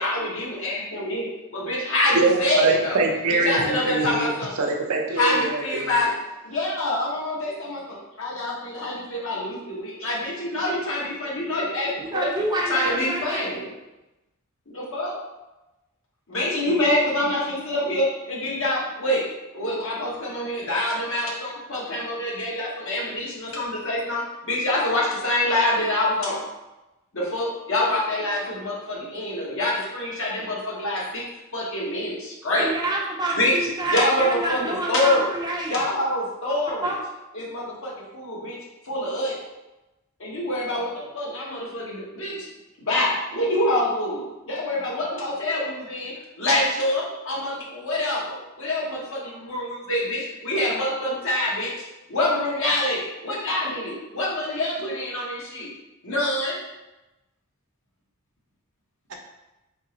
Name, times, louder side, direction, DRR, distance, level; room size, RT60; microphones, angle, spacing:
voice 1, 0.0-3.0 3.3-4.5 5.2-6.1 6.4-13.7 14.7-15.2 16.3-19.2 19.5-26.5 27.1-31.2 31.5-32.7 33.3-33.6 33.9-35.3 35.7-36.9 37.3-38.6 38.8-39.4 40.2-42.5 42.8-51.7 52.1-55.7 56.0-56.5, left 1 dB, 60° left, -4 dB, 1.0 m, -26 dB
voice 2, 2.1-4.3 4.6-6.0 59.1-59.2, right 2 dB, 80° right, 2 dB, 0.6 m, -23 dB
voice 3, 12.0-13.5 32.5-35.8 36.8-37.0, right 2 dB, 20° right, -2 dB, 0.5 m, -27 dB
3.6 x 2.9 x 2.8 m, 0.99 s
head